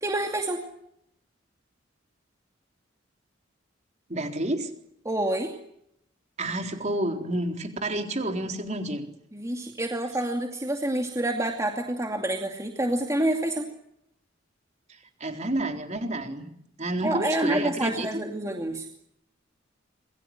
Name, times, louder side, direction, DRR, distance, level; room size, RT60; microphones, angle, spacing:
voice 1, 0.0-0.6 5.0-5.5 9.3-13.7 17.0-18.9, right 1 dB, 15° right, 3 dB, 2.5 m, -28 dB
voice 2, 4.1-4.7 6.4-9.1 15.2-16.5 16.8-18.2, right 1 dB, 35° right, 4 dB, 4.1 m, -29 dB
27.5 x 21.5 x 7.8 m, 0.78 s
head